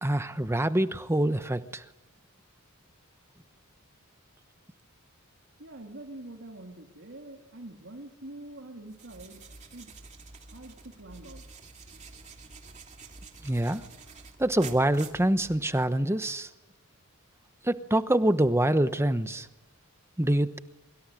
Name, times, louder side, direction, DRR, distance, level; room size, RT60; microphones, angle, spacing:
voice 1, 0.0-1.8 13.4-13.8 14.4-16.5 17.6-19.5 20.2-20.6, right 1 dB, 10° right, 11 dB, 1.0 m, -25 dB
voice 2, 5.6-9.4 9.7-9.9 10.5-11.4, right 2 dB, 60° right, 1 dB, 3.0 m, -45 dB
sound 1, 8.9-15.9, right 4 dB, 35° right, 2.7 m, -48 dB
24.5 x 24.0 x 10.0 m, 1.0 s
head